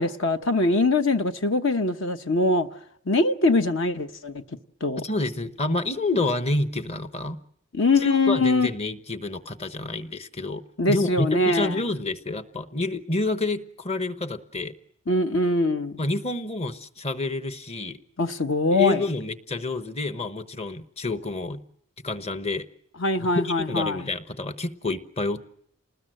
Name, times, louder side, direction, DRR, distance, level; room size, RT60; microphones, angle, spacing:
voice 1, 0.0-2.7 3.1-4.4 4.8-5.0 7.7-8.7 10.8-11.8 15.1-16.0 18.2-19.0 23.0-24.1, left 2 dB, 60° left, 1.0 m, -22 dB
voice 2, 5.0-7.4 8.0-10.6 10.9-14.7 16.0-18.0 18.7-21.6 22.0-22.6 23.2-25.4, left 2 dB, 30° left, 1.1 m, -28 dB
28.5 x 20.0 x 7.8 m
head